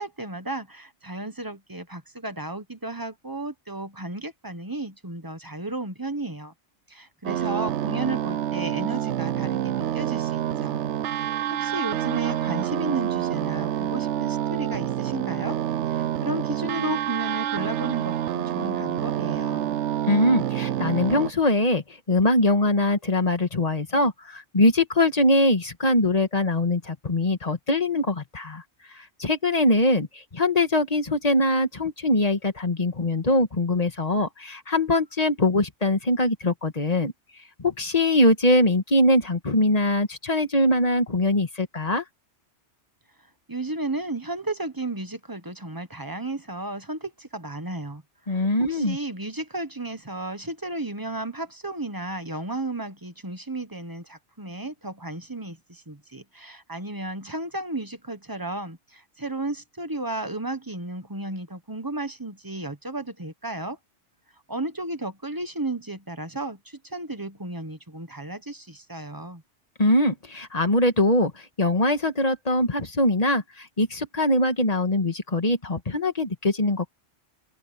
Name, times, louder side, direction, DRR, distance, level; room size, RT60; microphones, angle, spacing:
voice 1, 0.0-6.5 6.9-10.9 11.2-15.6 15.9-19.8 43.5-48.0 48.3-63.8 64.5-69.4, right 2 dB, 20° right, 1.2 m, -33 dB
sound 1, 7.2-21.3, right 11 dB, 80° right, 0.9 m, -27 dB
voice 2, 20.1-28.6 29.2-37.1 37.6-42.0 48.3-49.0 69.8-71.3 71.6-76.9, left 1 dB, 35° left, 1.9 m, -22 dB
open air
omnidirectional pair, 1.2 m